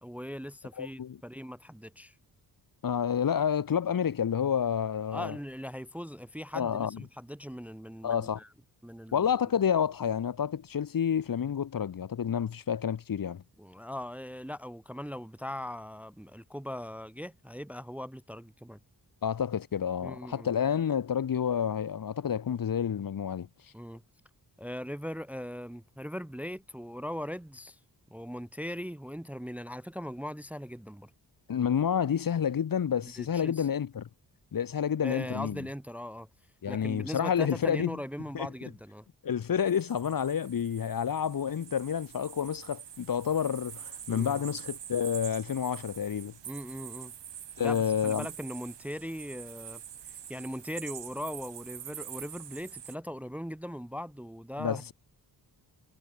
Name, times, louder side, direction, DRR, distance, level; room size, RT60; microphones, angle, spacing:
voice 1, 0.0-2.2 5.1-8.5 8.8-9.3 13.6-18.8 20.0-20.5 23.7-24.0 24.6-27.8 28.1-31.1 33.0-33.7 35.0-36.3 36.7-39.1 44.1-44.4 46.4-47.1 47.6-54.9, equal, 5° right, 0.8 m, -40 dB
voice 2, 0.8-1.2 2.8-5.3 6.5-7.0 8.0-8.4 9.1-13.4 19.2-23.5 31.5-34.1 34.5-35.6 36.6-38.0 38.3-38.5 39.2-46.3 47.6-48.3 54.6-54.9, left 8 dB, 55° left, 1.3 m, -29 dB
sound 1, 39.6-53.0, right 9 dB, 85° right, 2.3 m, -45 dB
wide cardioid pair, 140°, 41 cm